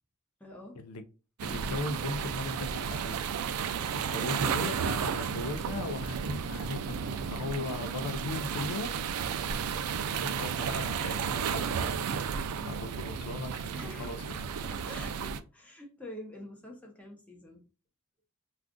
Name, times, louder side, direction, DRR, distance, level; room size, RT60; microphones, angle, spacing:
voice 1, 0.4-0.8 3.8-3.9 12.6-12.8 13.7-14.2 14.6-17.7, left 1 dB, 5° left, 0.7 m, -46 dB
voice 2, 1.4-3.2 3.9-9.0 10.1-11.9 12.7-14.2, left 3 dB, 85° left, 0.5 m, -38 dB
sound 1, 1.4-15.4, right 6 dB, 90° right, 0.4 m, -33 dB
2.4 x 2.4 x 3.6 m
head